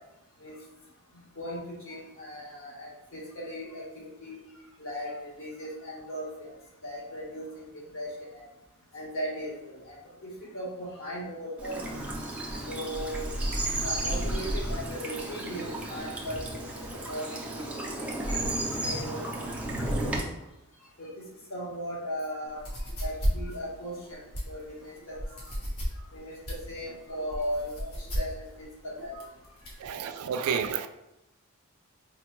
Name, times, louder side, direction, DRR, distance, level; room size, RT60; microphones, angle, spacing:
voice 1, 1.1-4.4 4.8-6.5 6.8-8.4 8.9-10.0 10.2-12.0 12.4-13.3 13.7-18.5 18.8-19.2 19.8-20.1 21.0-22.7 23.0-25.4 26.1-29.2 30.2-30.3, equal, 60° left, -4 dB, 1.2 m, -38 dB
Bird vocalization bird call bird song / Stream, 11.6-20.2, right 1 dB, 5° right, 0.4 m, -33 dB
sound 1, 22.5-29.9, equal, 90° left, 1.1 m, -34 dB
voice 2, 29.8-30.9, right 7 dB, 80° right, 10 dB, 0.3 m, -30 dB
4.3 x 2.2 x 3.0 m, 0.91 s
head